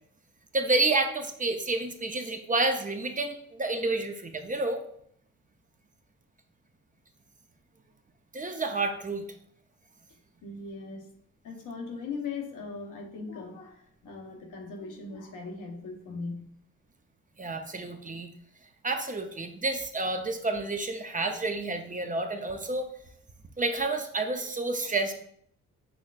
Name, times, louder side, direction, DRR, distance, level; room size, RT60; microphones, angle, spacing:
voice 1, 0.5-4.8 8.3-9.2 17.4-18.3 18.8-22.9 23.6-25.1, right 2 dB, 25° right, 6 dB, 0.6 m, -29 dB
voice 2, 10.4-11.1 11.4-16.5, left 4 dB, 75° left, 2 dB, 1.0 m, -39 dB
6.1 x 3.1 x 2.4 m, 0.67 s
supercardioid pair, 65°, 32 cm